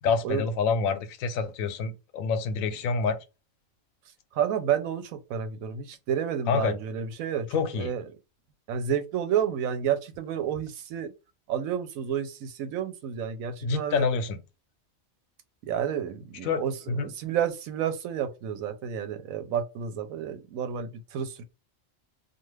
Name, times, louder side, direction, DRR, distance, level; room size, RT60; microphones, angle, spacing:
voice 1, 0.0-3.2 6.5-6.8 7.5-7.9 13.6-14.4 16.4-16.6 16.9-17.1, left 5 dB, 85° left, 1.0 m, -27 dB
voice 2, 4.3-8.1 8.7-11.1 11.5-14.1 15.6-21.4, right 8 dB, 85° right, 1.0 m, -30 dB
2.4 x 2.4 x 3.1 m
omnidirectional pair, 1.4 m